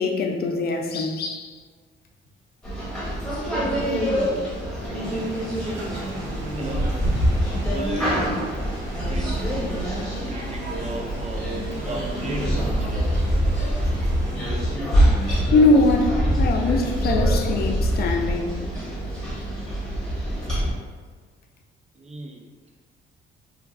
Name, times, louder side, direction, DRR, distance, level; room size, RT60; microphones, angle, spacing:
voice 1, 0.0-1.5 15.5-18.6, left 3 dB, 50° left, 2 dB, 0.4 m, -22 dB
sound 1, 2.6-20.7, equal, 5° left, 0.9 m, -24 dB
sound 2, 5.0-14.7, right 1 dB, 65° right, 1.2 m, -41 dB
voice 2, 6.6-7.0 7.6-8.5 9.1-9.6 10.3-11.5 11.8-13.3 16.8-17.1 22.0-22.5, right 2 dB, 35° right, 1 dB, 0.4 m, -35 dB
3.0 x 2.5 x 2.4 m, 1.5 s
cardioid pair, 90°, 20 cm